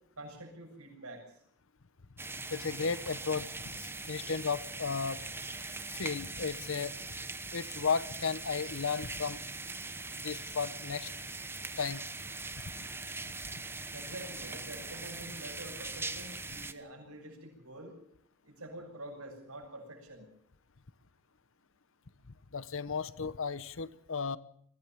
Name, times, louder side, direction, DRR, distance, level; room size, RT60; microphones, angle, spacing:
voice 1, 0.2-1.4 13.9-17.9 18.4-20.3, right 1 dB, 85° right, 2 dB, 7.5 m, -47 dB
sound 1, 2.2-16.7, right 3 dB, 10° right, 1.2 m, -41 dB
voice 2, 2.5-5.2 5.9-7.0 7.5-9.4 10.1-11.1 11.8-12.0 13.5-13.6 22.5-24.4, left 5 dB, 65° left, 16 dB, 0.9 m, -34 dB
22.0 x 16.5 x 7.4 m, 0.63 s
head